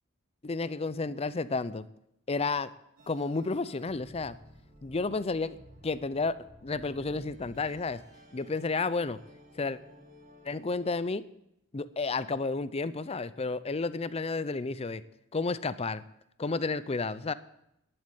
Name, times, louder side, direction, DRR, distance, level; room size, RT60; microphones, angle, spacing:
voice 1, 0.4-1.8 2.3-2.7 3.1-4.4 4.8-5.6 5.8-8.0 8.3-9.2 9.6-9.8 10.4-11.2 11.7-15.0 15.3-16.0 16.4-17.3, left 3 dB, 30° left, 15 dB, 0.5 m, -31 dB
sound 1, 3.0-11.0, equal, 45° right, 2.6 m, -54 dB
11.0 x 7.6 x 8.3 m, 0.78 s
head